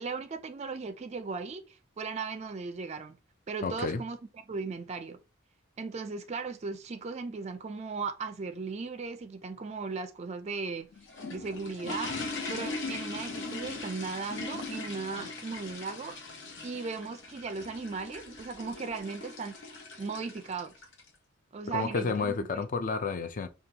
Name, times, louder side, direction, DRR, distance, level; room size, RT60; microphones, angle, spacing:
voice 1, 0.0-3.2 3.5-4.2 4.5-5.2 5.8-10.9 11.3-12.2 12.5-16.2 16.6-19.6 20.0-20.7 21.5-22.4, right 4 dB, 35° right, 0.3 m, -37 dB
voice 2, 3.6-4.0 21.7-23.5, left 4 dB, 40° left, 0.4 m, -31 dB
sound 1, 10.8-21.1, left 3 dB, 60° left, 0.9 m, -40 dB
5.1 x 2.3 x 2.8 m
head